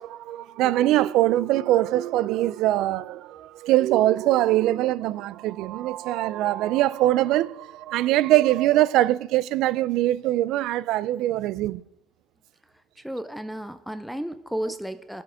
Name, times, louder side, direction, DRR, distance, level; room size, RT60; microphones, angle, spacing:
voice 1, 0.0-11.8, right 15 dB, 75° right, 0.4 m, -22 dB
voice 2, 13.0-15.2, right 1 dB, ahead, 0.5 m, -33 dB
18.0 x 7.6 x 5.0 m
cardioid pair, 160°, 0 cm